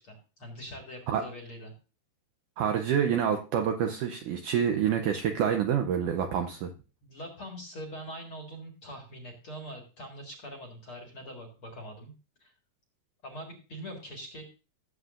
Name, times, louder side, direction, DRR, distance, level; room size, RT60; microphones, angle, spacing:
voice 1, 0.0-1.7 7.0-12.1 12.4-12.5 13.2-14.5, equal, 45° left, 3 dB, 2.0 m, -43 dB
voice 2, 2.6-6.7, right 8 dB, 75° right, 5 dB, 1.9 m, -27 dB
17.5 x 7.9 x 2.5 m, 0.33 s
omnidirectional pair, 4.4 m